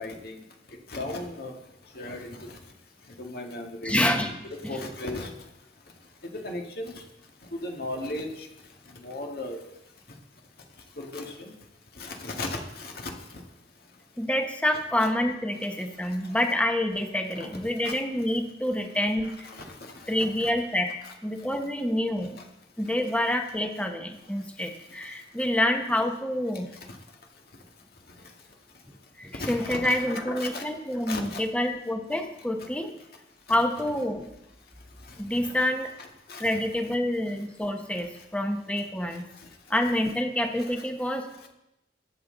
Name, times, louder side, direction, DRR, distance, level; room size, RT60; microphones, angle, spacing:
voice 1, 0.0-1.5 1.9-2.6 3.2-4.0 4.7-5.3 6.3-7.0 7.5-8.5 9.0-9.6 11.0-11.5 12.0-13.1 16.3-16.4 17.8-17.9 19.4-20.1 20.4-20.5 21.0-21.1 29.4-30.6 31.1-31.4 35.1-35.7 36.0-36.7 39.4-39.5 40.6-40.7, left 2 dB, 60° left, 2 dB, 1.9 m, -36 dB
voice 2, 3.8-4.3 4.6-4.8 14.2-19.5 20.1-20.9 21.2-22.4 22.8-26.7 28.9-32.9 33.5-34.3 35.2-35.9 36.4-39.3 39.7-41.3, left 1 dB, 5° left, 4 dB, 1.1 m, -27 dB
20.5 x 7.7 x 3.9 m, 0.87 s
head